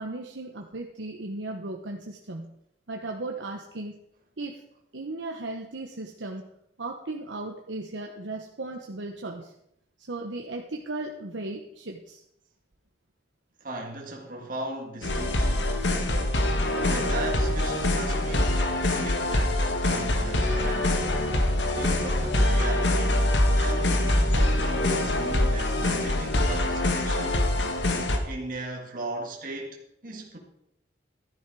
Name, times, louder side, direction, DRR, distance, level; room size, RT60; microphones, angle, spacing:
voice 1, 0.0-2.5 2.9-4.0 4.4-4.6 4.9-6.5 6.8-9.5 10.0-12.2, right 2 dB, 90° right, 1.2 m, -36 dB
voice 2, 13.6-15.9 16.7-21.0 21.8-27.4 28.3-30.4, right 2 dB, 50° right, 1.9 m, -37 dB
sound 1, 15.0-28.2, left 1 dB, 75° left, 1.6 m, -24 dB
13.0 x 10.5 x 4.8 m
head